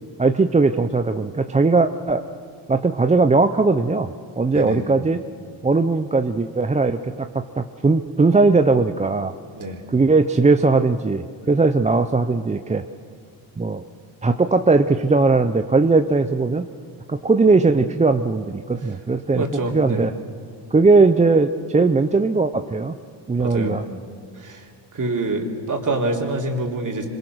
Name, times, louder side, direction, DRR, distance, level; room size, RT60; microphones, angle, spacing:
voice 1, 0.2-2.2 2.7-4.1 4.4-5.2 5.6-9.3 9.9-12.8 13.6-13.8 14.2-16.7 17.1-19.4 19.7-20.1 20.7-23.0 23.3-23.8, right 3 dB, 15° right, 8 dB, 0.6 m, -19 dB
voice 2, 19.3-20.0 23.4-23.8 24.3-24.7 24.9-27.1, right 2 dB, 40° right, 1 dB, 3.5 m, -26 dB
25.5 x 22.5 x 6.2 m, 2.3 s
cardioid pair, 85°, 48 cm